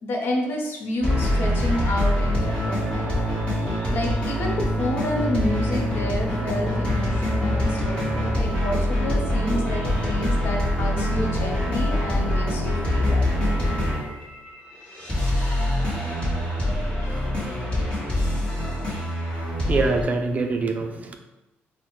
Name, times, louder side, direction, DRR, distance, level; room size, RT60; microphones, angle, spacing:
voice 1, 0.0-13.6, left 1 dB, 60° left, 1 dB, 0.7 m, -30 dB
sound 1, 1.0-20.0, left 1 dB, 25° left, 1.2 m, -24 dB
voice 2, 19.7-21.1, right 3 dB, 35° right, 4 dB, 0.4 m, -24 dB
4.0 x 2.1 x 2.9 m, 0.98 s
cardioid pair, 120°, 4 cm